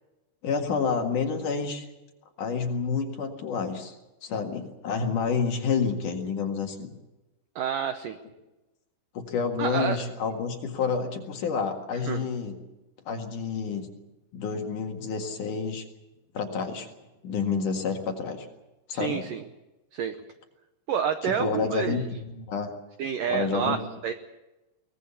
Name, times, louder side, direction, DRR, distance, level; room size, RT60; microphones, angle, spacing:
voice 1, 0.4-1.9 2.4-4.0 4.2-6.9 9.1-12.5 13.1-13.9 14.3-15.8 16.3-16.9 17.2-18.5 18.9-19.3 21.2-22.7 23.3-23.8, left 5 dB, 55° left, 3 dB, 2.9 m, -29 dB
voice 2, 7.6-8.2 9.6-10.0 12.0-12.3 18.9-19.4 19.9-20.1 20.9-22.1 23.0-24.1, right 8 dB, 90° right, 8 dB, 1.9 m, -29 dB
23.0 x 20.0 x 7.1 m, 1.0 s
omnidirectional pair, 5.2 m